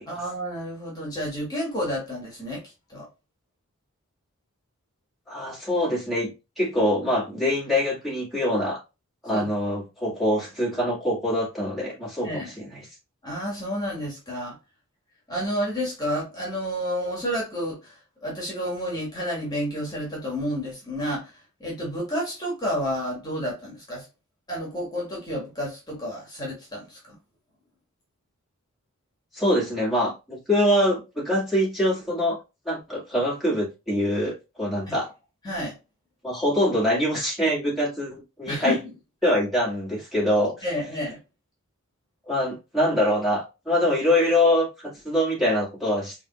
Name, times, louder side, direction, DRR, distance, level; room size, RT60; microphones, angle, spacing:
voice 1, 0.1-2.6 2.9-3.1 9.3-9.5 12.2-12.5 13.2-14.5 15.3-18.0 18.2-24.1 24.5-27.2 34.9-35.0 35.4-35.7 38.5-38.8 40.6-41.2, equal, 20° left, 1.9 m, -30 dB
voice 2, 5.3-8.8 9.2-12.9 29.3-32.4 32.7-35.1 36.2-38.8 39.2-40.7 42.3-46.2, left 1 dB, ahead, 2.0 m, -24 dB
4.9 x 3.5 x 2.4 m
head